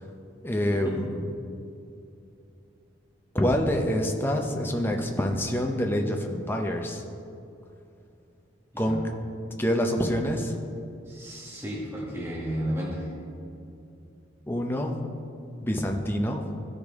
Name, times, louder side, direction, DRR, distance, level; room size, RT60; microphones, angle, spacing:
voice 1, 0.4-1.2 3.3-7.0 8.8-9.0 9.6-10.5 14.5-14.9 15.6-16.4, equal, 10° left, 2 dB, 0.6 m, -26 dB
voice 2, 8.7-9.0 11.0-13.1, equal, 15° right, -6 dB, 1.3 m, -33 dB
13.5 x 5.2 x 3.6 m, 2.6 s
head